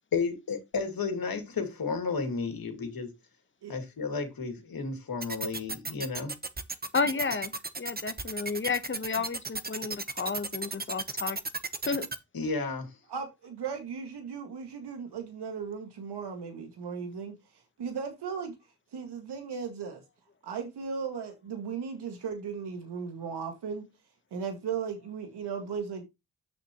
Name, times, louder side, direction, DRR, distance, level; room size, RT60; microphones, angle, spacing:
voice 1, 0.1-3.1 3.7-6.3 12.3-13.0, left 4 dB, 65° left, 2.4 m, -32 dB
sound 1, 5.2-12.2, right 3 dB, 25° right, 1.0 m, -34 dB
voice 2, 6.9-11.4 11.9-12.1, left 4 dB, 30° left, 1.0 m, -32 dB
voice 3, 13.1-17.3 17.8-18.5 18.9-20.0 20.4-23.8 24.3-26.0, right 6 dB, 90° right, 1.9 m, -36 dB
8.6 x 6.5 x 3.0 m
cardioid pair, 65°, 39 cm